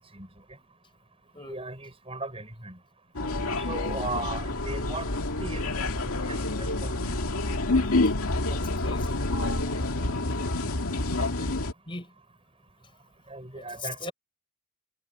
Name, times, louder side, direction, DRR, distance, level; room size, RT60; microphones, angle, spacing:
voice 1, 1.4-2.8 3.7-5.1 5.4-7.1 10.0-10.3 11.2-11.3 13.3-14.1, right 3 dB, 25° right, 7.1 m, -38 dB
sound 1, 3.1-11.7, left 2 dB, 75° left, 2.2 m, -28 dB
voice 2, 8.5-9.2 11.9-12.1 13.6-13.7 14.0-14.1, left 2 dB, 25° left, 5.0 m, -40 dB
head